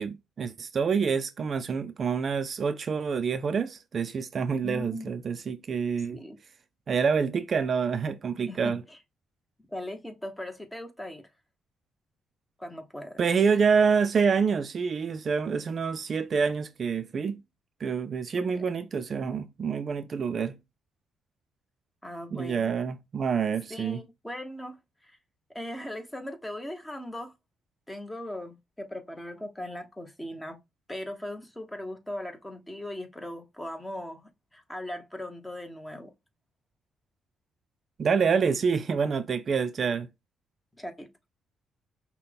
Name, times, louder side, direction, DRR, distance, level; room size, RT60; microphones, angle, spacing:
voice 1, 0.0-6.2 6.9-8.8 13.2-17.4 17.8-20.6 22.3-24.0 38.0-40.1, right 6 dB, 45° right, 0.4 m, -27 dB
voice 2, 4.6-5.1 6.1-6.4 6.9-7.0 8.5-9.0 9.7-11.3 12.6-13.2 18.4-18.6 22.0-22.7 23.7-24.8 25.0-25.2 25.5-27.3 27.9-30.6 30.9-34.2 34.5-36.1 40.8-41.1, left 1 dB, 10° left, 1.0 m, -39 dB
5.6 x 2.2 x 3.4 m
cardioid pair, 90°, 0 cm